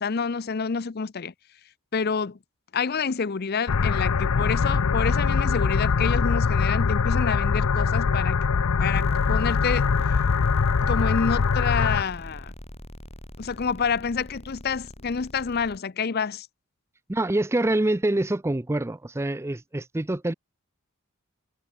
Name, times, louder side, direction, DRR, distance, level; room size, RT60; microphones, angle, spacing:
voice 1, 0.0-1.3 1.9-2.4 2.7-8.4 8.8-9.9 10.8-12.5 13.4-16.5, left 5 dB, 45° left, 0.5 m, -28 dB
sound 1, 3.7-12.0, left 5 dB, 85° left, 0.6 m, -23 dB
sound 2, 8.9-15.8, equal, 30° left, 5.3 m, -41 dB
voice 2, 17.1-20.3, right 1 dB, 10° right, 0.4 m, -25 dB
head